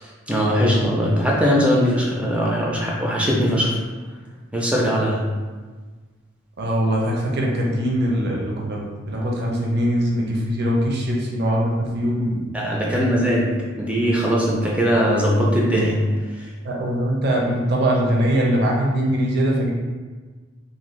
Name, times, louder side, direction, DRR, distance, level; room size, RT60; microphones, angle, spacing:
voice 1, 0.0-3.8 4.5-5.2 12.5-16.0, equal, 5° right, -4 dB, 0.3 m, -20 dB
voice 2, 6.6-12.5 13.0-13.1 16.6-19.7, equal, 55° right, -2 dB, 0.5 m, -22 dB
2.6 x 2.4 x 3.1 m, 1.4 s
head